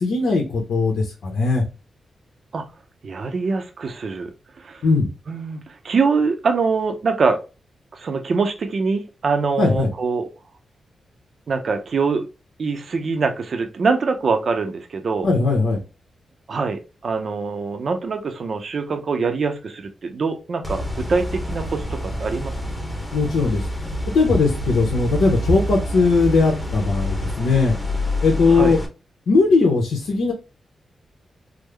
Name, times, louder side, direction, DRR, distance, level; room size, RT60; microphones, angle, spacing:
voice 1, 0.0-1.6 4.8-5.1 9.6-9.9 15.2-15.8 23.1-27.7 28.2-28.8 29.3-30.3, left 3 dB, 85° left, 0 dB, 0.8 m, -19 dB
voice 2, 3.0-4.3 4.6-4.8 5.3-7.4 7.9-10.3 11.5-12.3 12.6-15.3 16.5-22.6 28.5-28.8, right 4 dB, 55° right, 5 dB, 0.5 m, -24 dB
sound 1, 20.6-28.9, left 1 dB, 10° left, 0.9 m, -27 dB
3.6 x 2.0 x 3.2 m, 0.30 s
cardioid pair, 100°, 0 cm